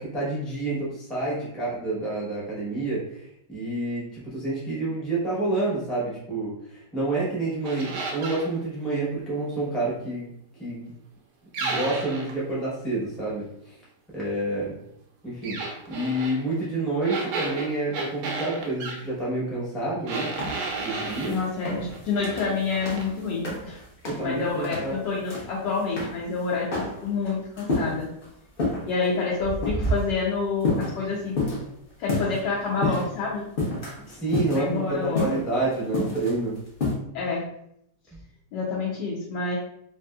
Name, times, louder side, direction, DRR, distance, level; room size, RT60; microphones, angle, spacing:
voice 1, 0.1-10.3 10.6-10.9 11.6-13.7 14.1-14.8 15.2-15.6 15.9-20.3 20.8-21.4 24.0-24.9 34.1-36.6, right 2 dB, ahead, -7 dB, 0.4 m, -28 dB
sound 1, 7.6-8.5 11.5-12.4 15.4-16.4 17.0-19.0 20.1-21.4 21.9-22.5 22.8-23.1, right 3 dB, 80° right, 1.2 m, -32 dB
sound 2, 20.4-23.8 24.1-24.3 24.6-25.6 25.9-26.2 26.7-28.3 28.6-28.9 29.4-30.2 30.6-32.4 32.8-33.1 33.6-34.9 35.2-36.9, left 1 dB, 50° left, 0.7 m, -29 dB
voice 2, 21.3-23.8 24.2-28.1 28.8-31.3 32.0-33.4 34.5-35.4 37.1-37.4 38.5-39.6, left 4 dB, 85° left, -5 dB, 1.3 m, -28 dB
3.3 x 2.7 x 2.2 m, 0.75 s
omnidirectional pair, 1.9 m